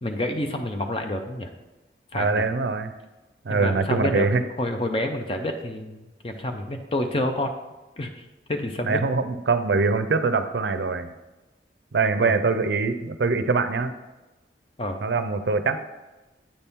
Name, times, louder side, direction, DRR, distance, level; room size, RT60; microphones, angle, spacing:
voice 1, 0.0-1.5 2.1-2.4 3.5-4.3 4.6-7.5 8.0-9.0 12.2-12.3 14.8-15.0, left 1 dB, 30° left, 5 dB, 0.6 m, -28 dB
voice 2, 2.1-2.9 3.4-4.4 8.8-11.1 11.9-13.9 15.0-15.8, right 4 dB, 75° right, 10 dB, 0.5 m, -23 dB
8.7 x 4.3 x 3.5 m, 1.1 s
head